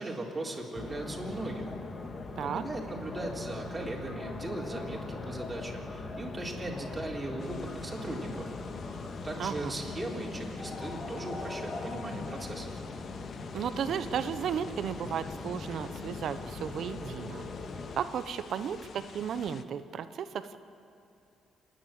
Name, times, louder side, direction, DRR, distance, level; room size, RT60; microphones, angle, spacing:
voice 1, 0.0-1.7 2.4-8.5 9.2-12.7, right 2 dB, 25° right, -2 dB, 3.9 m, -38 dB
sound 1, 0.7-18.0, left 3 dB, 40° left, 1.9 m, -40 dB
sound 2, 3.2-12.2 12.5-12.6, right 2 dB, 75° left, 2.1 m, -55 dB
sound 3, 7.4-19.6, left 6 dB, 55° left, 0.9 m, -49 dB
voice 2, 9.4-9.8 13.5-17.4 17.9-20.6, right 8 dB, 65° right, 11 dB, 1.0 m, -34 dB
29.0 x 10.5 x 8.9 m, 2.6 s
cardioid pair, 90°, 0 cm